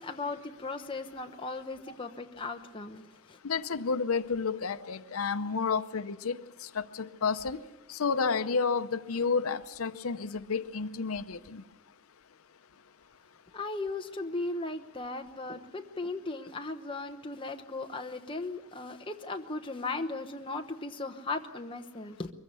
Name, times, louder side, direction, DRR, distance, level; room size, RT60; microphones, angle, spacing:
voice 1, 0.0-3.0 3.3-3.4 13.5-22.3, left 3 dB, 25° left, 5 dB, 1.0 m, -37 dB
voice 2, 3.4-7.6 7.9-11.6, left 5 dB, 85° left, 12 dB, 0.7 m, -31 dB
23.5 x 15.5 x 8.2 m, 1.0 s
head